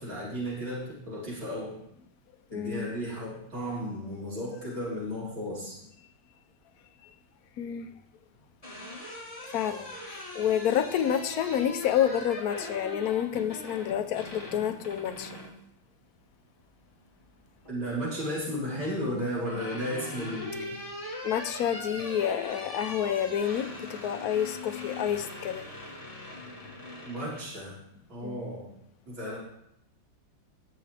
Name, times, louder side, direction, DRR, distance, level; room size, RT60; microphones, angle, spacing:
voice 1, 0.0-1.7 2.5-5.8 17.7-20.7 27.1-27.7 28.1-28.7 29.1-29.4, equal, 75° right, 5.1 m, -34 dB
voice 2, 2.5-2.9 7.6-7.9 9.4-15.4 21.2-25.7 28.2-28.4, left 9 dB, 60° left, 1.1 m, -29 dB
sound 1, 8.3-15.6 17.0-17.7 19.0-27.5, left 2 dB, 15° left, 2.5 m, -41 dB
20.0 x 6.8 x 3.5 m
omnidirectional pair, 2.2 m